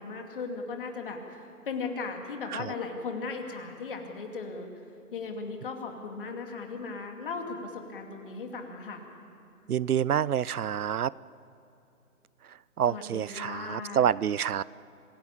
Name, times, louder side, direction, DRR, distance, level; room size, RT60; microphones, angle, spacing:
voice 1, 0.0-4.7 5.1-9.0 12.9-14.1, left 4 dB, 35° left, 3 dB, 2.6 m, -37 dB
voice 2, 9.7-11.1 12.8-14.6, right 9 dB, 75° right, 22 dB, 0.6 m, -27 dB
26.0 x 17.0 x 8.6 m, 2.8 s
hypercardioid pair, 160°, 45 cm